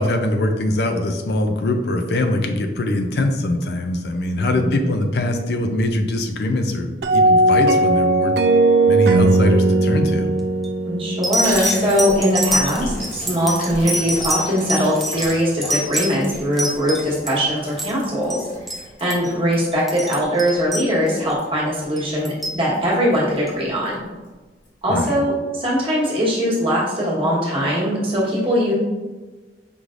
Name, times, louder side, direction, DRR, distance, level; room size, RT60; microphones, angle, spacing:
voice 1, 0.0-8.4 8.9-10.3 24.9-25.2, left 1 dB, 65° left, 6 dB, 0.4 m, -22 dB
voice 2, 4.3-4.8 10.8-18.4 19.0-24.0 24.8-28.7, equal, 30° right, -6 dB, 1.2 m, -21 dB
sound 1, 7.0-12.2, right 2 dB, 65° right, 0.3 m, -17 dB
sound 2, 10.4-10.7 11.2-17.4 17.7-18.0 18.3-18.4 18.7-18.8 19.1-19.3 19.7-21.3 22.0-22.6 23.5-23.6, right 1 dB, ahead, 0.6 m, -25 dB
Water tap faucet / Bathtub (filling or washing), 11.4-22.4 22.7-22.8 23.1-23.2 23.5-24.0 24.2-24.3 24.6-24.7, left 2 dB, 45° left, 1.0 m, -37 dB
5.2 x 3.1 x 2.5 m, 1.3 s
head